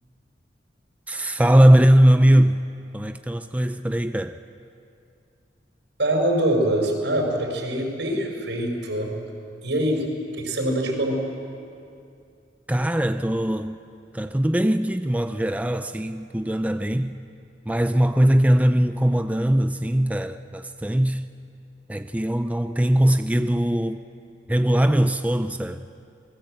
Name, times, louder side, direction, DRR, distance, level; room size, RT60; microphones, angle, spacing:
voice 1, 1.1-2.6 2.9-4.4 12.7-13.8 14.1-17.2 17.7-21.2 21.9-24.1 24.5-25.8, right 1 dB, 10° right, 0.5 m, -20 dB
voice 2, 6.0-9.2 9.6-11.2, right 1 dB, 75° right, 5.7 m, -24 dB
27.5 x 20.5 x 7.9 m
head